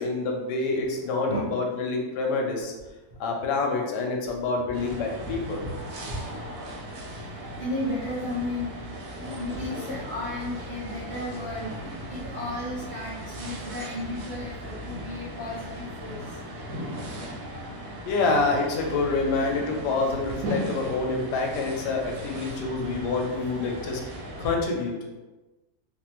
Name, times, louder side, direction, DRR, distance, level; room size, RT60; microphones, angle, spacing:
voice 1, 0.0-2.7 3.2-5.6 18.1-24.0 24.4-25.0, left 3 dB, 85° left, 1 dB, 1.2 m, -27 dB
sound 1, 4.7-24.5, equal, 75° right, 1.1 m, -37 dB
voice 2, 5.2-5.7 6.1-6.2 7.6-8.7 9.3-16.1, left 1 dB, 40° right, -9 dB, 0.6 m, -34 dB
3.2 x 2.1 x 2.9 m, 1.1 s
omnidirectional pair, 1.7 m